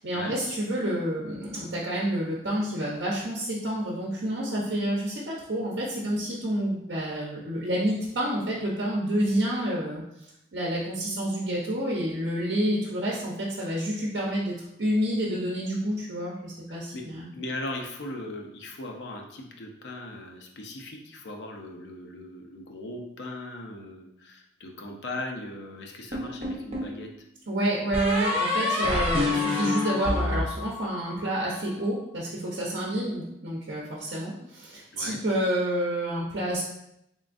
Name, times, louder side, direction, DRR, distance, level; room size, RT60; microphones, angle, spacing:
voice 1, 0.0-14.5 14.8-17.3 27.5-36.6, right 1 dB, 75° right, -4 dB, 0.8 m, -29 dB
voice 2, 16.7-17.0 17.3-27.1 34.9-35.2, left 2 dB, 75° left, 2 dB, 0.6 m, -38 dB
sound 1, 26.1-27.0 27.9-31.3, left 2 dB, 35° right, 1.0 m, -27 dB
3.6 x 3.5 x 2.5 m, 0.80 s
head